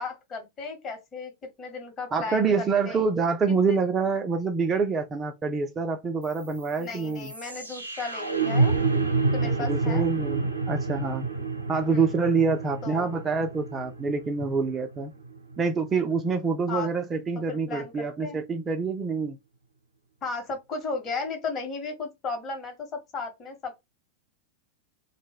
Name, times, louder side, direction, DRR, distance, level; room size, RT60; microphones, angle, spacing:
voice 1, 0.0-1.3 1.6-3.0 3.7-3.8 6.8-8.8 9.3-10.0 11.9-12.1 12.8-13.1 16.7-16.9 17.5-18.4 20.2-23.8, left 4 dB, 30° left, 0.9 m, -35 dB
voice 2, 2.1-7.3 9.6-11.3 11.7-15.1 15.6-19.4, right 4 dB, 20° right, 0.3 m, -26 dB
sound 1, 6.2-16.3, right 3 dB, 80° right, 0.5 m, -29 dB
2.1 x 2.0 x 3.3 m
figure-of-eight pair, 90°, 0 cm